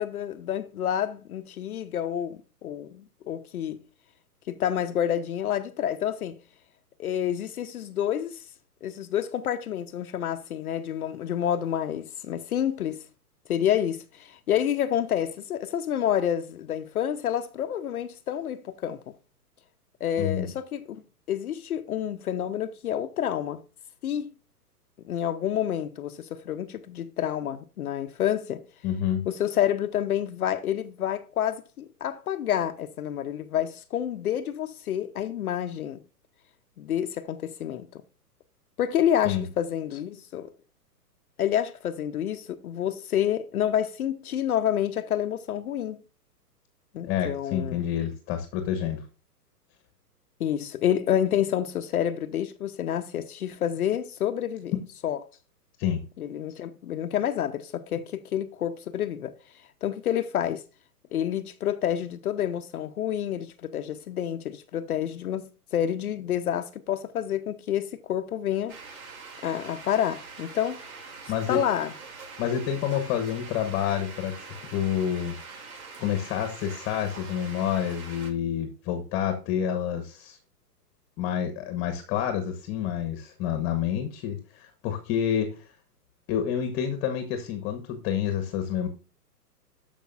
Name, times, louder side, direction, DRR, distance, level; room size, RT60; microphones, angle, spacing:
voice 1, 0.0-3.8 4.5-6.4 7.0-8.4 8.8-13.0 13.5-19.0 20.0-21.0 21.3-23.6 24.0-24.3 25.0-28.6 29.3-36.0 36.8-38.0 38.8-40.5 41.4-46.0 46.9-47.8 50.4-54.7 55.0-55.2 56.2-59.3 59.8-60.6 61.1-68.8 69.4-71.0 71.5-71.9, left 10 dB, 60° left, 0.8 m, -28 dB
voice 2, 20.2-20.5 28.8-29.2 39.2-39.4 47.0-49.0 54.7-54.8 55.8-56.0 71.3-71.6 72.4-75.3 76.0-80.4 81.2-85.5 86.3-88.9, left 9 dB, 25° left, 1.2 m, -28 dB
sound 1, 68.7-78.3, right 4 dB, 60° right, 2.9 m, -44 dB
13.5 x 5.2 x 2.5 m
hypercardioid pair, 125°, 48 cm